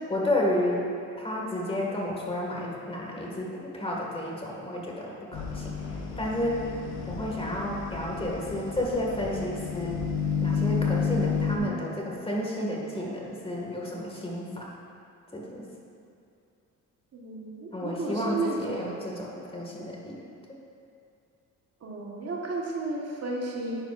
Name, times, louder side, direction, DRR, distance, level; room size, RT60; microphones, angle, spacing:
voice 1, 0.1-0.9 1.2-6.6 7.1-10.0 10.4-14.7 15.3-15.6 17.7-20.2 20.5-20.6, left 1 dB, 20° left, -3 dB, 2.0 m, -31 dB
sound 1, 5.3-11.6, left 5 dB, 75° left, 1.4 m, -31 dB
voice 2, 17.1-19.0 21.8-23.8, right 2 dB, 55° right, -2 dB, 1.6 m, -33 dB
10.5 x 10.0 x 2.6 m, 2.6 s
cardioid pair, 90°, 30 cm